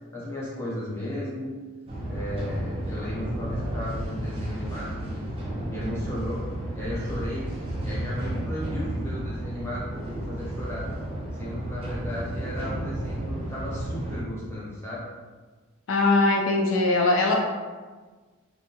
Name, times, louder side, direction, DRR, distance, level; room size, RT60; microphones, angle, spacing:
voice 1, 0.1-1.5 2.1-6.4 6.7-7.4 7.8-10.9 11.4-15.0, left 1 dB, 10° left, -8 dB, 0.7 m, -35 dB
sound 1, 1.9-14.2, right 1 dB, 25° right, 0.5 m, -32 dB
voice 2, 15.9-17.4, left 2 dB, 70° left, 0 dB, 0.3 m, -21 dB
2.6 x 2.1 x 2.9 m, 1.4 s
head